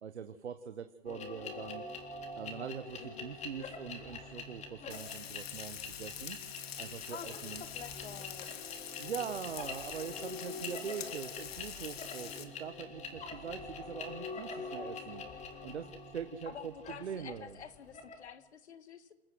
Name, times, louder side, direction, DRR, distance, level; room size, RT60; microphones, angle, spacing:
voice 1, 0.0-1.8 2.4-6.4 6.8-7.6 9.0-16.7 17.0-17.6, right 7 dB, 85° right, 9 dB, 1.5 m, -43 dB
sound 1, 1.1-18.3, left 3 dB, 20° left, 4.0 m, -45 dB
voice 2, 3.0-3.3 7.1-8.5 16.5-19.1, left 7 dB, 80° left, 11 dB, 2.1 m, -49 dB
Frying (food), 4.9-12.4, left 10 dB, 65° left, 2.7 m, -45 dB
28.5 x 14.0 x 7.9 m, 1.0 s
hypercardioid pair, 125°, 33 cm